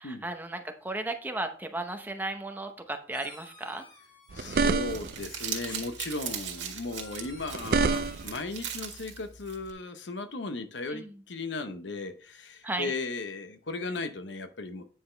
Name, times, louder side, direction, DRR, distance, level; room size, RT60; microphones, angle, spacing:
voice 1, 0.0-3.8 10.9-11.2 12.6-12.9, right 2 dB, 10° right, 6 dB, 0.8 m, -35 dB
sound 1, 3.1-4.7 5.6-6.4 6.9-8.4, left 2 dB, 25° left, 1.9 m, -52 dB
voice 2, 4.3-14.8, left 3 dB, 80° left, 9 dB, 0.9 m, -36 dB
sound 2, 4.3-5.3 7.3-8.4, right 4 dB, 50° right, 0.4 m, -27 dB
Crumpling crinkling, 4.6-9.7, right 8 dB, 75° right, 1.7 m, -39 dB
9.2 x 5.9 x 3.3 m, 0.40 s
head